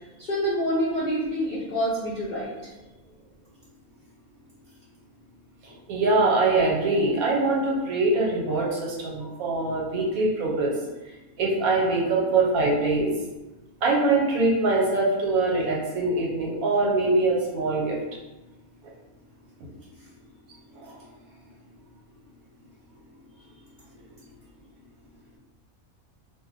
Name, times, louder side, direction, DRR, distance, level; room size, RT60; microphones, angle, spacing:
voice 1, 0.2-2.7 5.7-5.8, equal, 70° left, -7 dB, 0.4 m, -27 dB
voice 2, 5.9-10.7 11.4-13.1 13.8-18.0, right 2 dB, 75° right, -2 dB, 1.2 m, -23 dB
2.5 x 2.0 x 3.7 m, 1.1 s
omnidirectional pair, 1.5 m